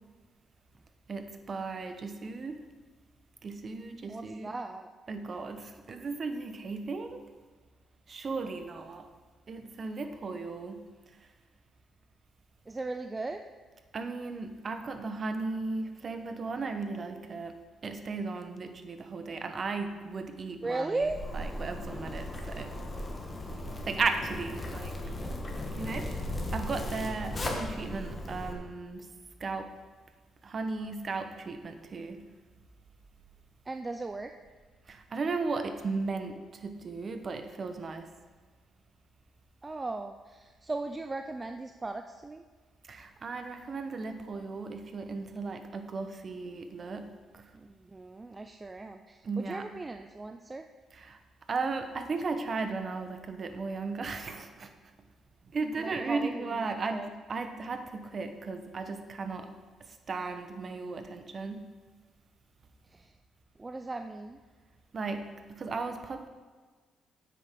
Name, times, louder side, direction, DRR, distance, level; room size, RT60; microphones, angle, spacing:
voice 1, 1.1-2.6 3.4-4.5 5.1-7.2 8.1-9.1 9.5-10.8 13.9-17.5 17.8-21.0 21.3-22.7 23.9-25.0 25.7-26.1 26.5-29.1 29.4-29.7 30.4-32.2 34.9-38.1 42.8-47.5 49.2-49.7 50.9-51.2 51.5-54.7 55.5-59.5 59.8-61.7 64.9-66.3, right 4 dB, 45° right, 8 dB, 0.9 m, -36 dB
voice 2, 4.1-4.9 12.7-13.4 20.6-21.2 33.7-34.4 39.6-42.4 47.5-50.7 55.8-56.6 56.9-57.1 62.9-63.1 63.6-64.4, right 2 dB, 25° right, 7 dB, 0.4 m, -37 dB
Zipper (clothing), 21.0-28.5, left 1 dB, 25° left, 1.5 m, -37 dB
9.7 x 8.4 x 3.7 m, 1.4 s
cardioid pair, 90°, 0 cm